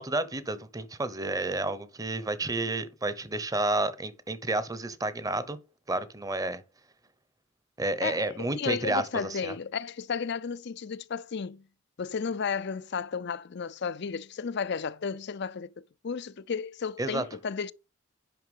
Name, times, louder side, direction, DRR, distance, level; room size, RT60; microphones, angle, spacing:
voice 1, 0.0-5.6 5.9-6.6 7.8-9.5 17.0-17.2, right 2 dB, 15° right, 0.8 m, -30 dB
voice 2, 8.0-11.6 12.0-17.7, left 6 dB, 55° left, 0.5 m, -33 dB
9.5 x 5.7 x 5.3 m
head